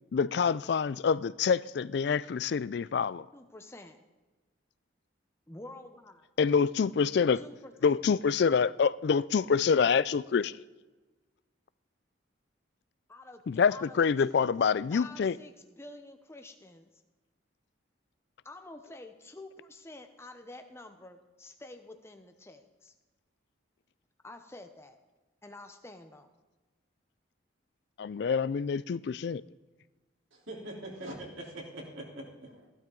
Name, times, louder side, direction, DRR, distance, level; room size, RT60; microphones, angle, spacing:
voice 1, 0.1-3.3 6.4-7.4 7.8-10.5 13.5-15.4 28.0-29.4, left 6 dB, 55° left, 0.3 m, -26 dB
voice 2, 3.3-4.0 5.5-6.3 7.3-8.0 13.1-16.9 18.4-22.9 24.2-25.0 25.4-26.3, left 2 dB, 15° left, 0.7 m, -49 dB
voice 3, 30.3-32.7, right 1 dB, 75° right, 3.5 m, -43 dB
15.5 x 12.0 x 3.8 m
head